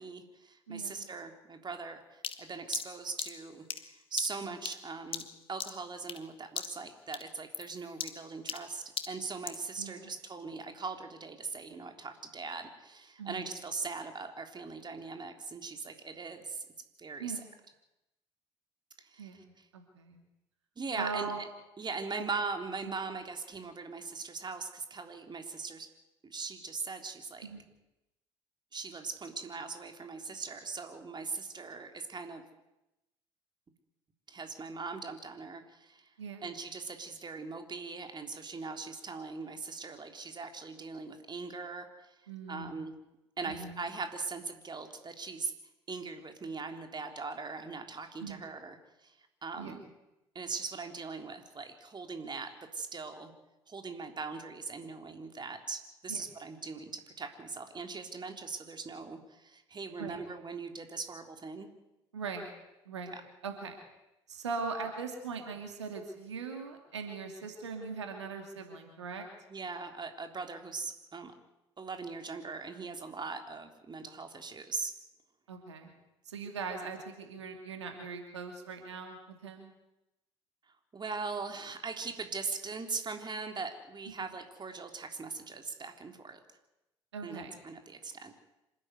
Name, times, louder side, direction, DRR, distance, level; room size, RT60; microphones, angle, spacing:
voice 1, 0.0-16.7 17.0-17.3 19.0-19.4 20.8-21.3 21.8-25.9 26.3-27.5 28.7-32.4 34.3-36.1 36.4-42.1 42.5-42.9 43.4-45.5 45.9-48.8 49.0-49.8 50.4-53.3 53.7-61.7 63.1-63.2 69.5-71.3 71.8-74.9 80.9-86.4 87.2-88.3, right 4 dB, 30° right, 5 dB, 3.7 m, -40 dB
voice 2, 0.7-1.1 4.4-4.6 9.8-10.1 13.2-13.5 17.2-17.5 19.2-20.2 20.9-21.5 22.1-22.3 22.8-23.0 27.4-27.6 36.2-36.5 42.3-42.7 43.4-43.8 48.2-48.5 49.6-49.8 56.1-56.2 60.0-60.2 62.1-62.5 62.9-63.2 63.4-63.8 64.3-69.3 75.5-75.9 76.3-79.7 84.2-84.3 87.1-87.6, right 5 dB, 85° right, 4 dB, 2.7 m, -40 dB
sound 1, 2.2-6.3 6.6-6.9 7.1-9.7, left 7 dB, 40° left, 1.9 m, -40 dB
26.5 x 13.0 x 9.6 m, 0.93 s
figure-of-eight pair, 55°, 14 cm